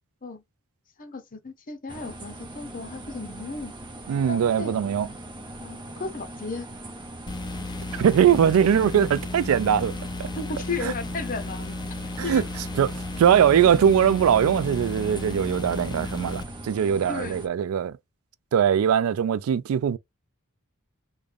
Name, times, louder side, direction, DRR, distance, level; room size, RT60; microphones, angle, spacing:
voice 1, 1.0-3.7 4.3-4.7 5.6-6.7 10.4-11.8 12.2-12.5 17.1-17.4, left 3 dB, 40° left, 0.7 m, -34 dB
sound 1, 1.9-17.5, right 1 dB, 20° right, 0.8 m, -41 dB
voice 2, 4.1-5.1 7.9-10.3 10.8-10.9 12.2-12.4 12.8-18.0 18.5-20.0, right 8 dB, 70° right, 0.3 m, -21 dB
sound 2, 7.3-16.4, left 2 dB, 20° left, 0.3 m, -34 dB
3.8 x 2.2 x 3.2 m
head